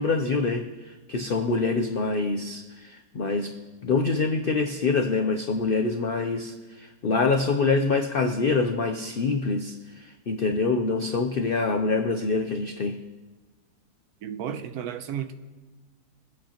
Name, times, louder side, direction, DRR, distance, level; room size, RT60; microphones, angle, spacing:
voice 1, 0.0-3.5 3.8-13.0, left 4 dB, 75° left, 0.5 m, -25 dB
voice 2, 14.2-15.3, right 9 dB, 70° right, 1.1 m, -33 dB
22.5 x 8.3 x 2.9 m
omnidirectional pair, 1.8 m